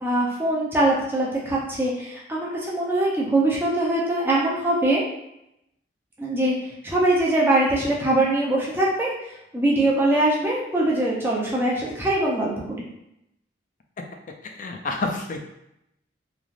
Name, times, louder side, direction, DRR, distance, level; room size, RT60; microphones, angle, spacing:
voice 1, 0.0-5.0 6.2-6.6 6.8-12.9, right 1 dB, 10° right, -5 dB, 0.5 m, -22 dB
voice 2, 14.4-15.4, left 3 dB, 45° left, 3 dB, 0.4 m, -29 dB
3.2 x 2.4 x 2.4 m, 0.83 s
head